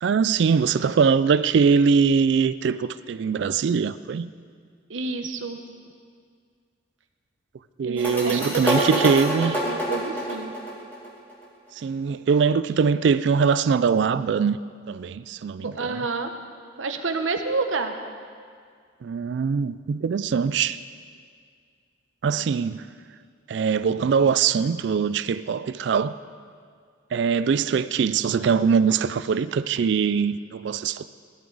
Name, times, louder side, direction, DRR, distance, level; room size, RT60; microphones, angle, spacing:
voice 1, 0.0-4.3 7.8-9.6 11.7-14.6 14.9-16.0 19.0-20.8 22.2-22.9 23.5-26.2 27.1-31.1, right 6 dB, 65° right, 0.3 m, -22 dB
voice 2, 4.9-5.6 7.8-10.5 15.6-16.3 16.8-17.9, right 4 dB, 85° right, 1.0 m, -29 dB
sound 1, 8.0-11.4, equal, 10° left, 2.4 m, -27 dB
17.0 x 12.5 x 4.0 m
head